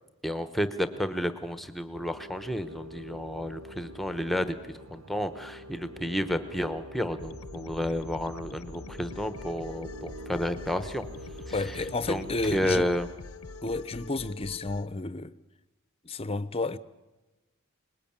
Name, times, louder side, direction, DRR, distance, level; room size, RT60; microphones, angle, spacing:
voice 1, 0.2-11.0 12.1-12.2 12.5-13.1, equal, ahead, 1.0 m, -31 dB
sound 1, 1.9-13.9, equal, 90° right, 1.0 m, -46 dB
sound 2, 7.2-14.9, left 3 dB, 75° left, 0.7 m, -45 dB
voice 2, 11.5-12.9 13.6-15.3 16.0-16.8, left 2 dB, 25° left, 0.7 m, -31 dB
25.0 x 20.0 x 8.8 m
head